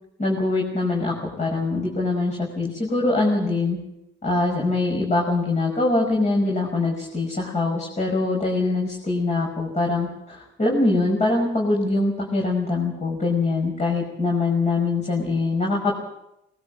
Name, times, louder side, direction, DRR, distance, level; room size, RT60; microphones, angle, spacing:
voice 1, 0.2-3.8 4.2-16.0, left 2 dB, 35° left, -1 dB, 5.8 m, -23 dB
20.5 x 19.0 x 7.5 m, 0.85 s
cardioid pair, 90°, 20 cm